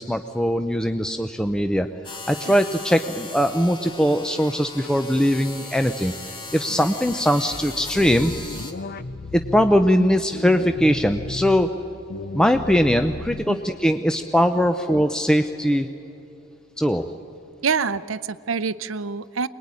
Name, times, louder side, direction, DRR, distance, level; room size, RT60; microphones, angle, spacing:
voice 1, 0.0-6.1 6.5-8.3 9.3-11.7 12.3-15.9 16.8-17.1, equal, 5° left, 7 dB, 0.6 m, -21 dB
sound 1, 2.0-8.7, left 3 dB, 25° left, 2.6 m, -38 dB
sound 2, 7.9-9.9 10.3-11.7 12.1-13.7, left 3 dB, 45° left, 0.6 m, -34 dB
voice 2, 17.6-19.5, right 5 dB, 70° right, 16 dB, 0.7 m, -26 dB
25.0 x 20.5 x 9.7 m, 2.9 s
head